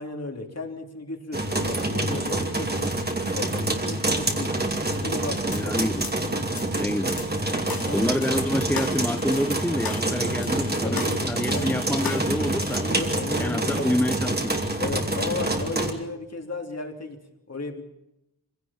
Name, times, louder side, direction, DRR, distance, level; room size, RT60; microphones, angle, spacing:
voice 1, 0.0-3.0 3.3-5.8 7.5-8.2 10.8-11.7 12.7-13.9 14.8-17.2 17.5-17.8, left 3 dB, 45° left, 3 dB, 3.2 m, -35 dB
sound 1, 1.3-15.9, right 2 dB, 30° right, 2.6 m, -27 dB
sound 2, 5.5-5.6 6.0-6.2 6.6-6.7 7.2-7.3 7.7-13.1, left 5 dB, 80° left, 2.7 m, -38 dB
voice 2, 5.5-6.1 6.7-7.2 7.9-12.9 13.4-14.6, left 1 dB, 5° left, 8 dB, 0.8 m, -27 dB
25.5 x 17.0 x 7.2 m, 0.86 s
wide cardioid pair, 115°, 35 cm